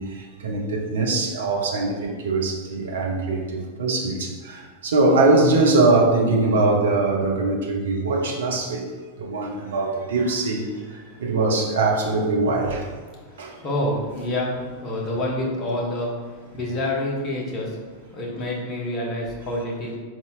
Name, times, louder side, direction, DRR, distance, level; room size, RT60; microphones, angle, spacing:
voice 1, 0.0-8.8 9.2-10.7 11.2-12.9 13.4-13.5, right 2 dB, 65° right, 0 dB, 0.6 m, -22 dB
voice 2, 13.1-20.0, left 1 dB, 30° left, -2 dB, 0.9 m, -28 dB
4.0 x 3.6 x 2.3 m, 1.4 s
figure-of-eight pair, 90°, 0 cm